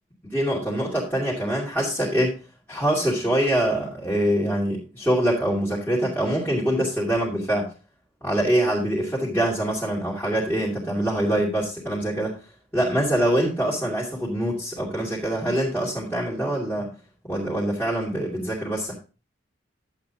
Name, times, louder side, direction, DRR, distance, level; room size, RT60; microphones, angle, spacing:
voice 1, 0.2-2.4 2.7-7.7 8.2-12.4 12.7-16.9 17.2-18.9, right 1 dB, 10° left, -6 dB, 2.6 m, -24 dB
11.5 x 8.3 x 2.9 m, 0.33 s
head